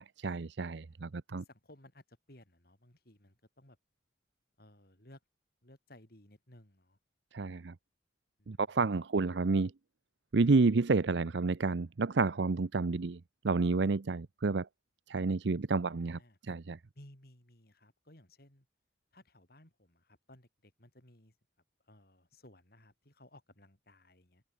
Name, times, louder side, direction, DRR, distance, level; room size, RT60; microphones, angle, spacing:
voice 1, 0.0-1.4 7.3-7.7 8.5-9.7 10.3-14.7 15.1-16.8, right 3 dB, 75° right, 0.6 m, -30 dB
voice 2, 1.1-3.8 4.6-5.2 5.6-7.0 8.4-9.0 15.8-16.4 16.9-18.7 19.1-21.4 21.8-24.4, left 1 dB, 55° left, 5.6 m, -59 dB
head